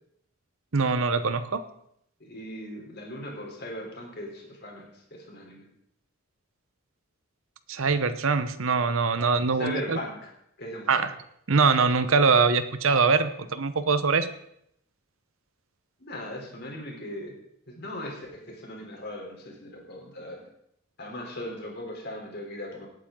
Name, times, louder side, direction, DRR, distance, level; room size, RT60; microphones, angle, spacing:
voice 1, 0.7-1.6 7.7-10.0 10.9-11.1 11.5-14.3, right 4 dB, 65° right, 12 dB, 0.9 m, -23 dB
voice 2, 2.2-5.7 9.6-10.3 10.6-10.9 16.0-17.4 17.7-20.4 21.0-22.9, left 1 dB, 45° left, 0 dB, 3.6 m, -38 dB
18.5 x 8.8 x 3.8 m, 0.73 s
head